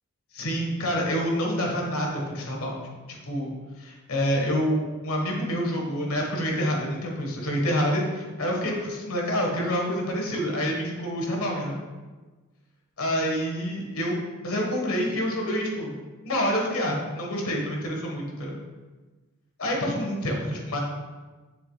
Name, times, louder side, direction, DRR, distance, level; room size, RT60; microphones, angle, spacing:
voice 1, 0.3-2.8 3.1-3.5 3.8-11.8 13.0-15.9 16.2-18.6 19.6-20.8, equal, 75° left, 0 dB, 1.4 m, -27 dB
6.9 x 6.5 x 2.3 m, 1.3 s
head